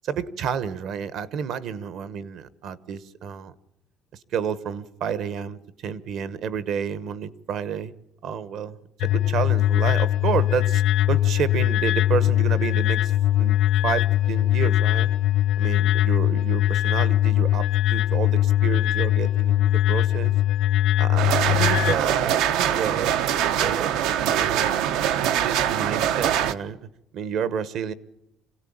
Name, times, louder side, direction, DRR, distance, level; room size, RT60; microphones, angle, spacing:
voice 1, 0.0-3.5 4.3-7.9 8.2-10.8 11.1-13.1 13.4-13.6 13.8-15.1 15.6-20.3 21.0-24.8 25.2-26.9 27.1-27.9, right 7 dB, 50° right, 16 dB, 1.1 m, -30 dB
sound 1, 9.0-22.0, left 13 dB, 65° left, 0.8 m, -21 dB
sound 2, 21.2-26.5, right 10 dB, 75° right, 1.0 m, -23 dB
26.0 x 17.5 x 8.7 m, 0.89 s
cardioid pair, 175°, 0 cm